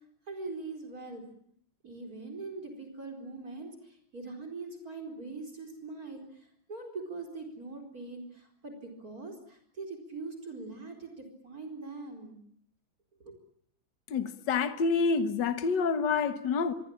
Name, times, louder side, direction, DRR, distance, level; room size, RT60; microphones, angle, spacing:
voice 1, 0.3-1.2 1.8-12.4 13.2-13.4, right 3 dB, 45° right, 5.0 m, -42 dB
voice 2, 14.1-16.7, left 5 dB, 65° left, 2.0 m, -28 dB
25.5 x 23.0 x 8.8 m
omnidirectional pair, 2.1 m